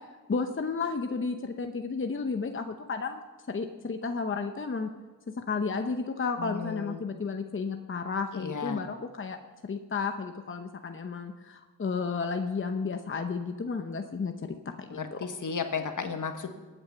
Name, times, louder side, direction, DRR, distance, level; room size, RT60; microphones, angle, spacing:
voice 1, 0.3-3.2 3.5-4.9 5.4-15.2, left 4 dB, 40° left, 6 dB, 0.9 m, -32 dB
voice 2, 6.4-7.0 8.3-8.8 14.9-16.5, left 5 dB, 65° left, 6 dB, 1.5 m, -34 dB
21.0 x 9.0 x 5.7 m, 1.3 s
wide cardioid pair, 85°, 33 cm